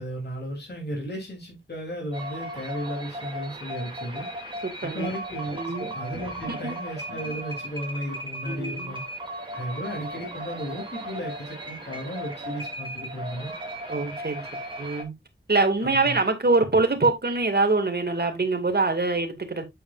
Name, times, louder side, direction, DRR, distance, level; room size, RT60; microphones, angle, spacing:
voice 1, 0.0-4.3 4.8-9.0 9.5-13.5 15.8-16.2, equal, 55° left, 3.3 m, -34 dB
sound 1, 2.1-15.0, right 1 dB, 25° right, 2.5 m, -36 dB
voice 2, 5.5-5.9 6.5-6.6 8.5-9.0 13.9-14.4 14.8-15.1 15.5-19.7, right 3 dB, 55° right, 2.3 m, -24 dB
8.5 x 7.5 x 2.5 m
wide cardioid pair, 75°, 20 cm